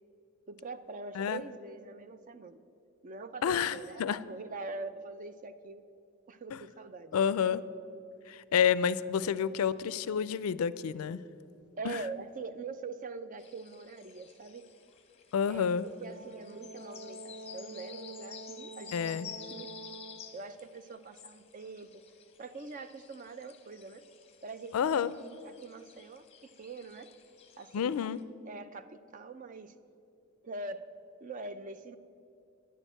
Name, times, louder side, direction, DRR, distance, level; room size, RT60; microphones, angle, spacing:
voice 1, 0.5-2.6 3.0-5.8 6.3-7.3 11.8-14.6 15.5-19.7 20.3-21.9 22.4-24.0 24.4-27.1 27.6-28.0 28.5-29.7 30.4-30.9 31.2-32.0, right 3 dB, 35° right, 12 dB, 0.4 m, -43 dB
voice 2, 3.4-4.2 6.5-6.6 7.1-7.6 8.3-11.2 11.8-12.0 15.3-15.8 18.9-19.3 24.7-25.1 27.7-28.2, left 7 dB, 75° left, 17 dB, 0.3 m, -29 dB
sound 1, 13.4-28.2, left 7 dB, 25° left, 0.7 m, -53 dB
Brass instrument, 16.1-20.3, right 2 dB, 85° right, 1.6 m, -47 dB
10.0 x 6.3 x 8.9 m, 2.6 s
head